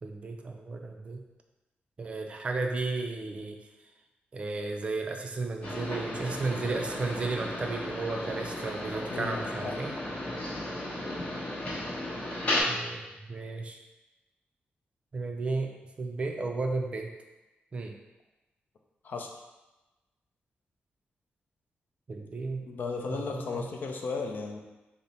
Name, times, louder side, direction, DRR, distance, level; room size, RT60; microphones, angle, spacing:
voice 1, 0.0-1.2 2.0-3.6 4.3-10.0 12.7-13.8 15.1-15.7 16.0-17.1 17.7-17.9 22.1-22.7 23.1-23.7, right 3 dB, 35° right, 3 dB, 0.4 m, -34 dB
sound 1, 5.6-12.6, left 1 dB, 40° left, 1.0 m, -34 dB
voice 2, 9.1-9.8 19.0-19.3 22.6-24.6, left 4 dB, 55° left, 2 dB, 0.5 m, -35 dB
5.1 x 2.0 x 4.1 m, 1.1 s
wide cardioid pair, 170°, 4 cm